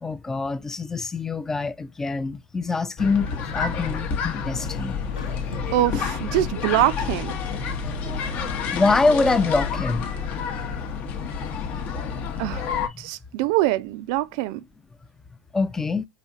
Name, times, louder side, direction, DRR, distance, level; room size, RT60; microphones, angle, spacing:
voice 1, 0.0-5.0 8.7-10.1 15.5-16.1, left 3 dB, 15° left, 0.4 m, -24 dB
sound 1, 3.0-12.9, left 6 dB, 45° left, 0.7 m, -29 dB
sound 2, 5.1-6.0, left 4 dB, 85° left, 0.6 m, -42 dB
voice 2, 5.7-7.3 12.4-12.6 13.0-14.6, right 15 dB, 60° right, 0.3 m, -24 dB
4.1 x 2.7 x 2.4 m
hypercardioid pair, 90°, 4 cm